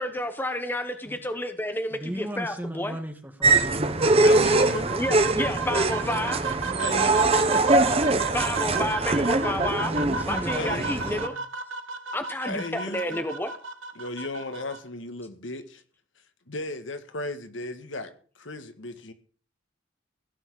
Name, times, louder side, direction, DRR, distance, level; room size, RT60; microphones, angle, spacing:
voice 1, 0.0-3.0 4.9-6.5 8.3-9.9 10.3-11.3 12.1-13.5, left 1 dB, 10° left, 8 dB, 1.1 m, -30 dB
voice 2, 1.9-4.3 8.2-8.8 9.8-11.4, equal, 10° right, 6 dB, 1.7 m, -37 dB
sound 1, 3.4-11.3, right 2 dB, 30° right, 1.0 m, -23 dB
sound 2, 3.8-14.8, right 5 dB, 85° right, 1.2 m, -34 dB
voice 3, 4.2-4.9 6.8-7.4 10.5-11.2 12.4-13.2 13.9-15.8 16.5-18.1 18.4-19.1, left 2 dB, 75° left, 9 dB, 1.7 m, -35 dB
16.5 x 6.2 x 8.3 m, 0.42 s
head